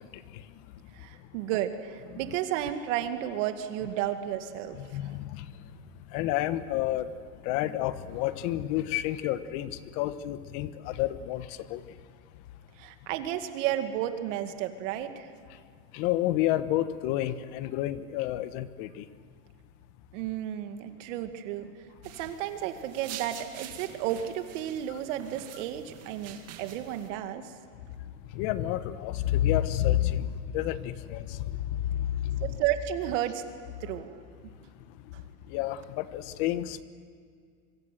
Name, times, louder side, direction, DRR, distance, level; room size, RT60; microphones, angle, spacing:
voice 1, 0.9-5.2 12.8-15.3 20.1-21.7 22.2-27.5 32.4-33.4 33.8-34.2, right 11 dB, 65° right, 7 dB, 2.2 m, -32 dB
voice 2, 4.8-5.5 6.1-7.1 7.4-11.8 15.9-19.1 28.3-32.6 35.5-36.8, left 13 dB, 55° left, 13 dB, 1.2 m, -30 dB
sound 1, 22.0-27.1, right 9 dB, 40° right, 2.3 m, -46 dB
25.5 x 24.0 x 7.6 m, 2.1 s
supercardioid pair, 150°, 39 cm